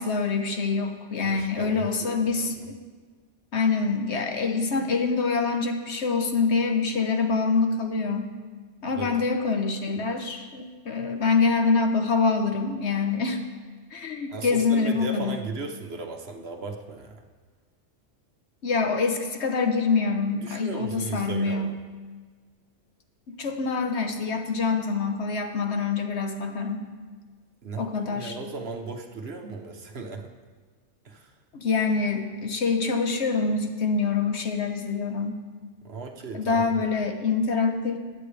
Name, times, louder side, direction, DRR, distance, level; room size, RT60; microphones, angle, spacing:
voice 1, 0.0-2.5 3.5-8.3 8.8-13.4 13.9-15.4 18.6-21.7 23.3-26.8 27.8-28.4 31.5-35.4 36.3-38.0, left 4 dB, 70° left, 5 dB, 1.3 m, -25 dB
voice 2, 1.2-2.7 8.9-9.2 14.3-17.2 20.4-21.8 27.6-30.3 31.0-31.3 35.8-36.9, right 3 dB, 60° right, 4 dB, 1.3 m, -37 dB
21.0 x 8.3 x 3.4 m, 1.5 s
omnidirectional pair, 1.2 m